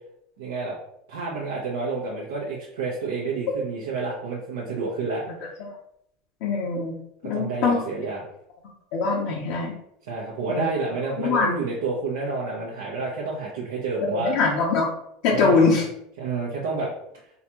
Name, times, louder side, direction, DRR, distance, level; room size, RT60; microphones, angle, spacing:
voice 1, 0.4-0.8 1.1-5.3 7.3-8.3 10.0-14.3 15.3-15.8 16.2-16.9, right 4 dB, 85° right, -5 dB, 0.8 m, -29 dB
voice 2, 6.4-6.9 7.2-7.8 8.9-9.7 10.5-10.7 11.2-11.5 14.1-14.9 15.2-15.9, left 4 dB, 70° left, -3 dB, 0.7 m, -22 dB
3.9 x 2.4 x 2.9 m, 0.74 s
supercardioid pair, 115°, 0 cm